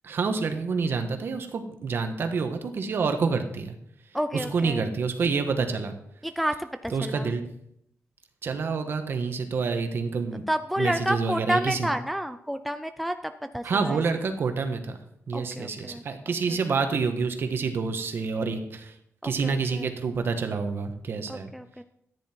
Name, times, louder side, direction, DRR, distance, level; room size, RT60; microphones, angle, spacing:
voice 1, 0.0-3.7 4.3-5.9 6.9-7.4 8.4-10.4 10.8-11.9 13.6-15.0 15.3-18.9 19.2-21.5, right 4 dB, 45° right, 6 dB, 1.5 m, -28 dB
voice 2, 4.1-4.9 6.2-7.3 10.5-14.0 15.3-16.0 19.2-19.8 21.3-21.8, equal, ahead, 8 dB, 0.4 m, -30 dB
14.0 x 10.0 x 4.5 m, 0.75 s
wide cardioid pair, 170°, 5 cm